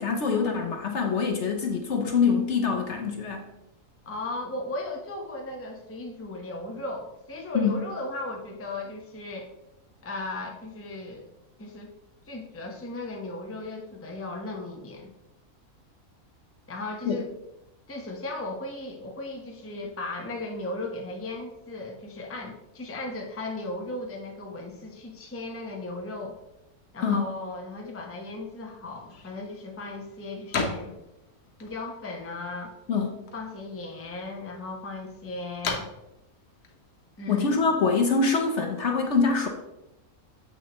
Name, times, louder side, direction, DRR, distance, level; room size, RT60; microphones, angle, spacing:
voice 1, 0.0-3.5 7.5-7.8 17.1-17.2 27.0-27.2 32.9-33.1 37.3-39.5, left 5 dB, 55° left, 2 dB, 1.0 m, -24 dB
voice 2, 4.0-9.5 10.0-11.3 11.6-11.9 12.3-15.1 16.7-17.3 17.9-26.4 26.9-31.0 31.6-32.7 33.3-35.9 37.2-37.7, left 2 dB, 10° left, 1 dB, 0.7 m, -36 dB
sound 1, 28.9-38.0, left 4 dB, 85° left, 1.5 m, -39 dB
7.5 x 6.2 x 3.0 m, 0.91 s
omnidirectional pair, 1.5 m